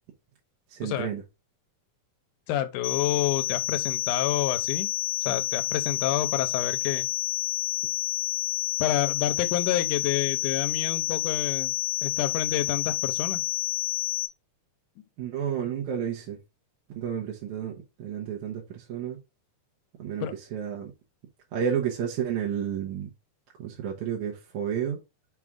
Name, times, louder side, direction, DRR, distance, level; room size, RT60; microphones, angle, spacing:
voice 1, 0.7-1.2 15.2-16.4 16.9-19.2 20.0-20.9 21.5-23.1 23.6-25.0, right 8 dB, 70° right, 2.4 m, -31 dB
voice 2, 2.5-4.9 5.3-7.1 8.8-11.7 12.0-13.4 20.2-20.3, left 11 dB, 85° left, 2.3 m, -28 dB
sound 1, 2.8-14.3, left 18 dB, 70° left, 2.3 m, -29 dB
5.9 x 4.9 x 3.6 m
omnidirectional pair, 3.6 m